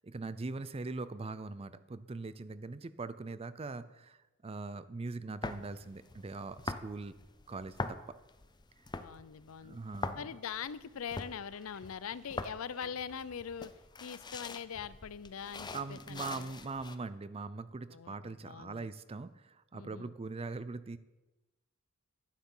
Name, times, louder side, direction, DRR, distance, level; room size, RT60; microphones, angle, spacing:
voice 1, 0.0-7.1 7.5-8.2 9.6-10.3 15.7-21.0, right 3 dB, 30° right, 14 dB, 0.5 m, -41 dB
sound 1, 5.4-17.0, left 3 dB, 20° left, 0.6 m, -44 dB
sound 2, 8.6-14.4, equal, 5° right, 1.9 m, -66 dB
voice 2, 9.0-9.8 10.1-13.7 14.0-16.5 17.9-18.9 19.7-20.1, left 7 dB, 75° left, 17 dB, 0.5 m, -42 dB
11.5 x 9.4 x 5.5 m, 1.1 s
head